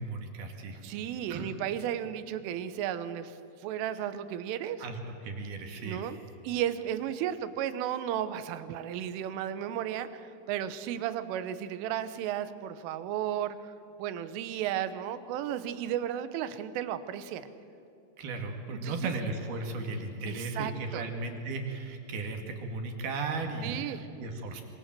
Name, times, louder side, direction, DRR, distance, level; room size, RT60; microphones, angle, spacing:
voice 1, 0.0-0.8 1.3-1.5 3.7-3.8 4.8-6.0 18.2-24.6, right 3 dB, 60° right, 4 dB, 3.5 m, -36 dB
voice 2, 0.8-4.9 5.8-6.2 6.4-13.7 14.0-17.5 18.8-19.1 20.3-21.0 23.6-24.1, right 10 dB, 85° right, 12 dB, 3.6 m, -34 dB
26.0 x 25.0 x 7.6 m, 2.8 s
omnidirectional pair, 5.6 m